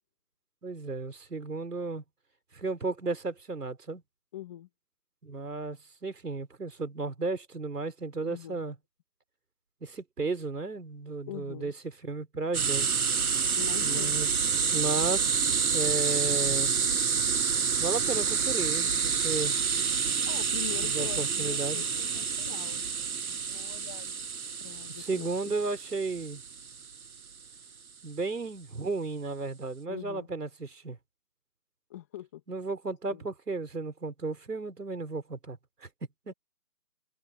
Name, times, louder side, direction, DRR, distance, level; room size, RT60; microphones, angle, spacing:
voice 1, 0.6-2.0 2.5-4.0 5.2-8.8 9.8-11.7 12.0-12.9 13.8-14.3 14.7-15.2 15.7-16.7 17.8-19.6 20.8-21.8 25.0-26.4 28.0-31.0 32.5-35.9 36.3-36.4, right 3 dB, 80° right, 5.2 m, -34 dB
voice 2, 4.3-4.7 8.2-8.6 11.3-11.7 13.6-14.2 20.3-24.2 24.6-25.5 29.9-30.3 31.9-32.4 33.1-33.2, left 13 dB, 10° left, 1.1 m, -43 dB
sound 1, 12.5-27.1, right 6 dB, 65° right, 1.6 m, -28 dB
open air
figure-of-eight pair, 160°, 46 cm